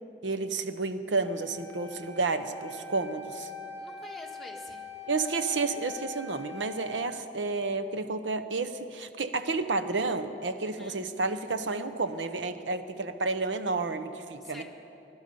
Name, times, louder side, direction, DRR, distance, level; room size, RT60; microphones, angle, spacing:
voice 1, 0.2-3.5 5.1-14.6, right 3 dB, 85° right, 10 dB, 0.8 m, -31 dB
Wind instrument woodwind instrument, 1.2-7.1, left 4 dB, 65° right, 3.3 m, -43 dB
voice 2, 3.7-4.8 10.6-11.0 14.4-14.6, left 2 dB, ahead, -1 dB, 1.5 m, -47 dB
20.5 x 12.0 x 5.5 m, 2.8 s
head